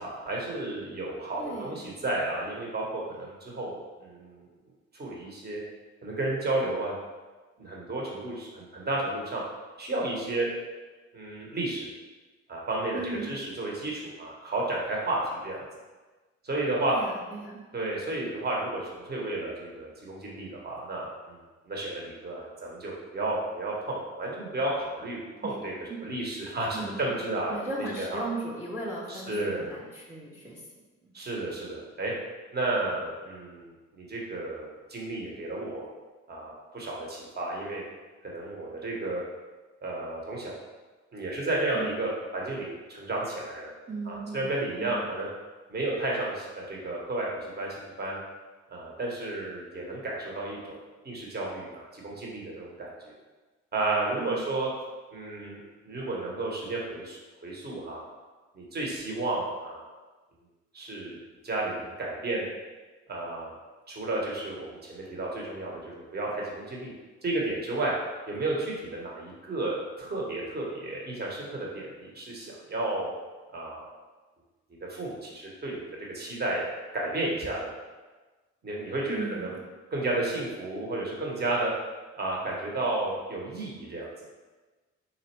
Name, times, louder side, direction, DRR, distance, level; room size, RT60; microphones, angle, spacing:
voice 1, 0.0-4.5 4.9-5.6 6.0-6.9 7.6-9.4 9.8-10.5 11.1-11.9 12.5-15.6 16.4-16.9 17.7-21.4 21.7-25.7 26.0-27.5 27.9-28.2 29.1-29.7 31.1-32.1 32.5-35.9 36.3-37.8 38.2-39.2 39.8-40.6 41.1-43.7 44.1-45.3 45.7-48.2 48.7-50.8 51.0-52.9 53.7-54.7 55.1-55.6 55.8-58.0 58.5-59.9 60.7-61.2 61.4-62.5 63.1-63.5 63.9-66.9 67.2-67.9 68.3-73.1 73.5-73.9 74.9-75.8 76.1-76.7 76.9-77.7 78.6-79.5 79.9-81.7 82.2-84.1, right 2 dB, 35° right, -3 dB, 1.1 m, -32 dB
voice 2, 1.4-1.8 12.9-13.3 16.8-17.6 25.4-25.5 25.9-26.0 26.7-27.1 27.5-30.6 31.0-31.1 41.7-42.0 43.9-45.0 54.2-54.4 79.1-79.6, right 2 dB, 5° right, -4 dB, 0.7 m, -37 dB
4.1 x 2.5 x 4.4 m, 1.3 s
cardioid pair, 90°, 30 cm